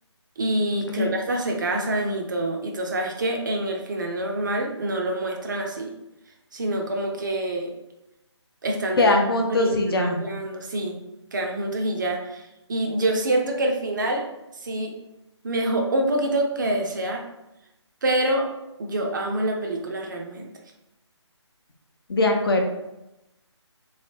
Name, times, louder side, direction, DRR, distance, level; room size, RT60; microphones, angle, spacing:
voice 1, 0.4-5.9 6.5-7.7 8.6-11.0 11.3-12.4 12.7-14.2 14.6-14.9 15.4-17.2 18.0-18.5 18.8-20.5, right 1 dB, 40° right, 2 dB, 0.5 m, -26 dB
voice 2, 9.0-10.2 22.1-22.7, left 2 dB, 55° left, 3 dB, 0.6 m, -21 dB
3.2 x 2.7 x 2.8 m, 0.91 s
figure-of-eight pair, 150°, 15 cm